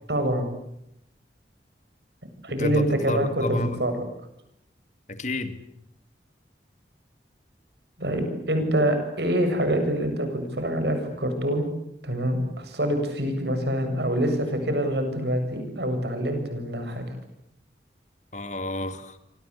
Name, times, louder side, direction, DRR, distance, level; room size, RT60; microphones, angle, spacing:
voice 1, 0.1-0.5 2.4-4.0 8.0-11.7 12.0-17.0, right 1 dB, 70° right, 7 dB, 7.7 m, -25 dB
voice 2, 2.6-3.8 5.1-5.6 18.3-19.2, left 1 dB, 40° left, 10 dB, 2.3 m, -30 dB
28.5 x 24.5 x 8.4 m, 0.78 s
head